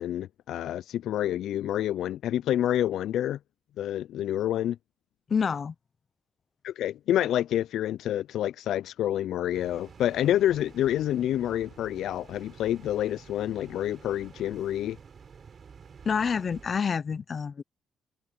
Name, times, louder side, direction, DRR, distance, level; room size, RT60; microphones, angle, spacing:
voice 1, 0.0-3.4 3.8-4.8 6.6-15.0, left 12 dB, 80° left, 0.3 m, -28 dB
voice 2, 5.3-5.7 16.0-17.6, left 6 dB, 45° left, 0.6 m, -28 dB
sound 1, 9.5-16.8, right 6 dB, 45° right, 7.1 m, -50 dB
cardioid pair, 90°, 0 cm